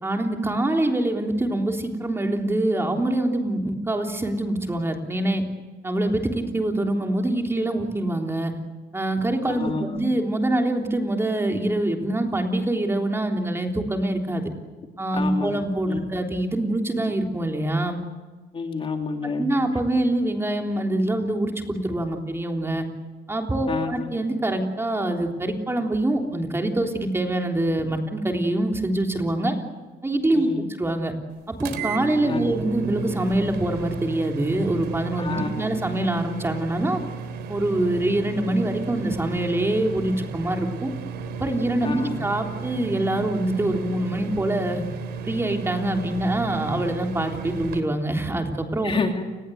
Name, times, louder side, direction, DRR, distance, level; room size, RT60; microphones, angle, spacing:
voice 1, 0.0-5.4 5.8-8.5 8.9-14.5 15.0-18.0 19.2-22.9 23.3-29.6 30.0-30.5 30.8-31.1 31.5-37.0 37.5-40.9 41.4-44.8 45.2-48.9, right 1 dB, 15° right, 3 dB, 3.5 m, -25 dB
voice 2, 9.4-10.0 15.1-15.6 15.9-16.1 18.5-19.5 23.7-24.1 30.3-30.7 32.2-32.6 35.2-35.7 41.8-42.3 48.8-49.2, left 4 dB, 30° left, 4 dB, 2.9 m, -29 dB
sound 1, 31.6-47.8, right 5 dB, 80° right, 3.7 m, -34 dB
29.5 x 20.0 x 8.0 m, 1.3 s
cardioid pair, 110°, 17 cm